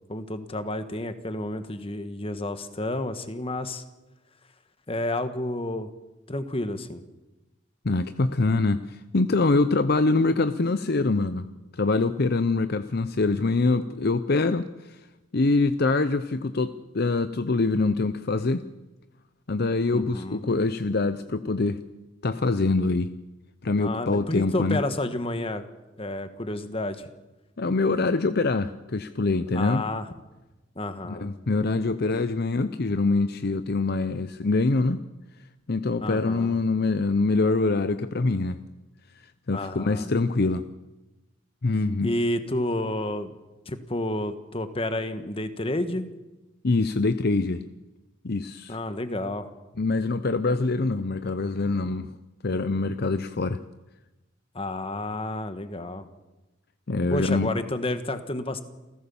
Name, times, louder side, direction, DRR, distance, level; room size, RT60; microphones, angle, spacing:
voice 1, 0.1-3.8 4.9-5.9 6.3-7.0 19.9-20.4 23.8-25.7 26.0-27.1 29.5-30.1 30.7-31.3 36.0-36.6 39.5-40.1 42.0-43.4 43.7-46.1 48.7-49.5 54.5-56.1 57.1-58.6, left 1 dB, 30° left, 10 dB, 1.5 m, -30 dB
voice 2, 7.8-11.5 11.7-15.0 15.3-18.7 19.5-21.8 22.2-23.1 23.6-24.8 27.6-29.8 31.0-35.0 35.7-38.6 39.5-40.7 41.6-42.1 46.6-47.6 48.2-48.8 49.8-52.1 52.4-53.6 56.9-57.5, left 3 dB, 55° left, 12 dB, 0.7 m, -24 dB
28.0 x 15.5 x 7.1 m, 1.1 s
head